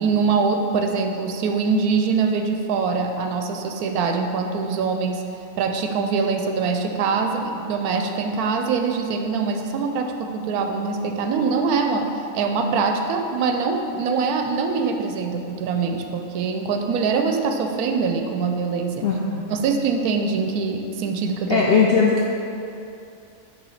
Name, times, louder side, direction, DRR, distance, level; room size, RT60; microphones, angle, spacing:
voice 1, 0.0-5.2 5.6-12.1 12.3-19.1 19.5-21.6, right 5 dB, 85° right, 5 dB, 1.1 m, -23 dB
voice 2, 19.0-19.5 21.5-22.3, left 5 dB, 70° left, -3 dB, 0.5 m, -19 dB
6.2 x 3.0 x 5.7 m, 2.7 s
omnidirectional pair, 1.5 m